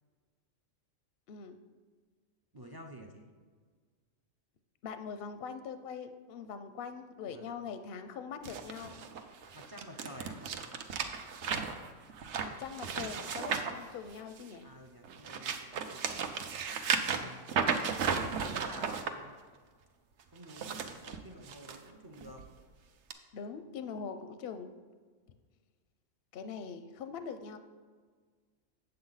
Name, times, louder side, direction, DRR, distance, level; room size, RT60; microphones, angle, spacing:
voice 1, 2.5-3.2 7.3-7.5 9.5-10.4 14.6-16.0 17.1-17.6 18.4-19.4 20.3-22.4, equal, 35° right, 2 dB, 0.3 m, -50 dB
voice 2, 4.8-9.0 12.4-14.7 17.2-17.3 23.3-24.7 26.3-27.6, left 6 dB, 65° left, 9 dB, 0.6 m, -42 dB
sound 1, 8.4-14.6 15.0-19.1 20.4-21.8 22.2-22.5 23.1-23.2, right 6 dB, 65° right, 0.9 m, -35 dB
7.9 x 7.7 x 4.0 m, 1.5 s
omnidirectional pair, 1.4 m